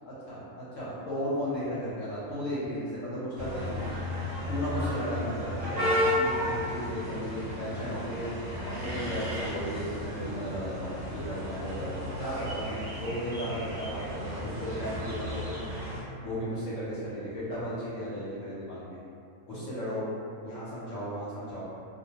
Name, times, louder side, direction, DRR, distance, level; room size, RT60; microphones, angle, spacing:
voice 1, 0.0-3.9 4.5-8.3 8.6-15.6 16.2-19.0 19.5-20.1 20.4-21.6, equal, 70° left, -9 dB, 0.9 m, -35 dB
sound 1, 3.4-16.0, left 1 dB, 50° right, 0.7 m, -33 dB
2.3 x 2.2 x 2.7 m, 2.5 s
omnidirectional pair, 1.6 m